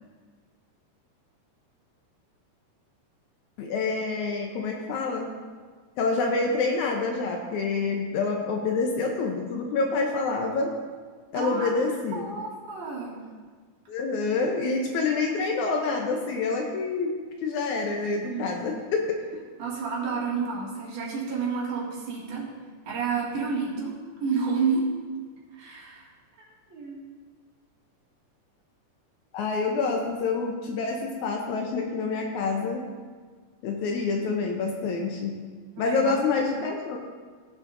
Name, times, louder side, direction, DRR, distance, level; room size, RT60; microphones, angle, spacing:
voice 1, 3.6-5.3 6.0-10.7 11.3-12.3 13.9-19.2 29.3-32.9 33.6-35.4 35.8-37.0, left 4 dB, 75° left, 2 dB, 2.0 m, -27 dB
voice 2, 11.3-11.7 12.1-13.2 18.3-18.6 19.6-22.5 22.9-24.9 25.5-26.1 26.4-27.1 35.8-36.5, right 5 dB, 65° right, -6 dB, 3.4 m, -30 dB
16.5 x 7.3 x 2.6 m, 1.5 s
omnidirectional pair, 3.9 m